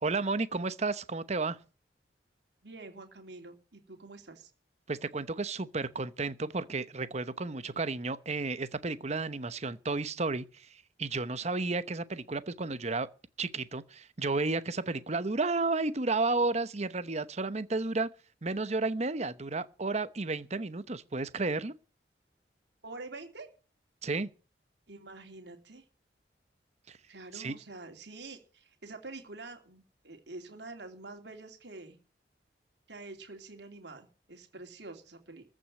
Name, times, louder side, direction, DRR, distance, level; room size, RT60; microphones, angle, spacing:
voice 1, 0.0-1.6 4.9-13.1 13.4-18.1 18.4-21.7 24.0-24.3 26.9-27.0 27.3-27.5, right 3 dB, 40° right, 0.9 m, -32 dB
voice 2, 2.6-4.5 22.8-23.5 24.9-25.8 27.1-32.0 32.9-35.4, right 3 dB, 80° right, 2.8 m, -47 dB
14.5 x 6.3 x 9.0 m
head